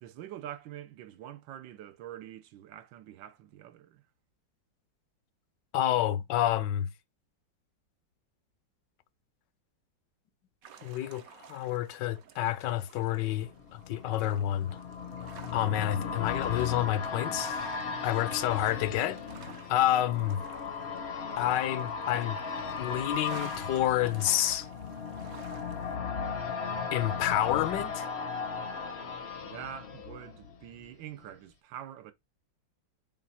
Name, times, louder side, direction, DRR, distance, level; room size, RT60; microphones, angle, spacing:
voice 1, 0.0-4.0 29.4-32.1, right 11 dB, 85° right, 1.5 m, -45 dB
voice 2, 5.7-6.9 10.8-14.8 15.5-17.8 18.0-20.4 21.4-22.4 22.8-24.7 26.9-28.1, left 12 dB, 75° left, 1.2 m, -29 dB
sound 1, 10.6-26.0, right 7 dB, 60° right, 1.1 m, -53 dB
sound 2, 13.2-30.9 31.2-31.3, left 5 dB, 50° left, 0.8 m, -37 dB
7.4 x 2.5 x 5.5 m
omnidirectional pair, 2.0 m